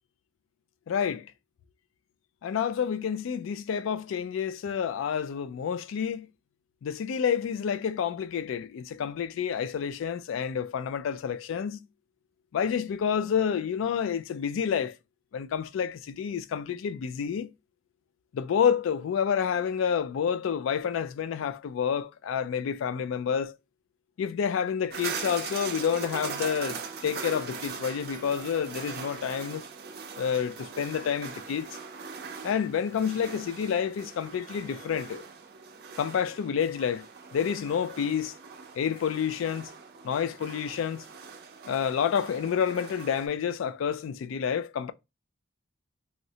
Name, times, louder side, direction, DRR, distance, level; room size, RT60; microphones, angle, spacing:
voice 1, 0.9-1.3 2.4-6.3 6.8-11.8 12.5-14.9 15.3-17.5 18.3-23.6 24.2-29.6 30.2-31.7 32.4-35.2 36.0-37.1 37.3-38.3 38.8-39.7 40.0-41.1 41.7-44.9, left 7 dB, 75° left, 0.3 m, -29 dB
sound 1, 24.9-43.3, right 6 dB, 50° right, 0.5 m, -41 dB
3.6 x 2.0 x 2.7 m
head